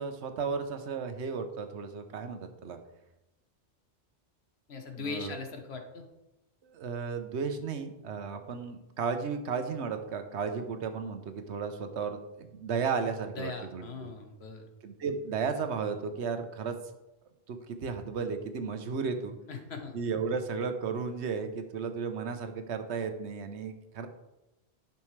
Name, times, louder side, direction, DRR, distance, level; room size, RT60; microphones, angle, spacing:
voice 1, 0.0-2.8 5.0-5.4 6.6-14.1 14.8-16.8 17.5-19.4 19.9-24.1, right 5 dB, 85° right, 7 dB, 1.1 m, -34 dB
voice 2, 4.7-6.1 13.4-14.6 19.5-19.9, left 4 dB, 70° left, 5 dB, 1.3 m, -40 dB
10.5 x 5.9 x 3.2 m, 0.96 s
omnidirectional pair, 1.1 m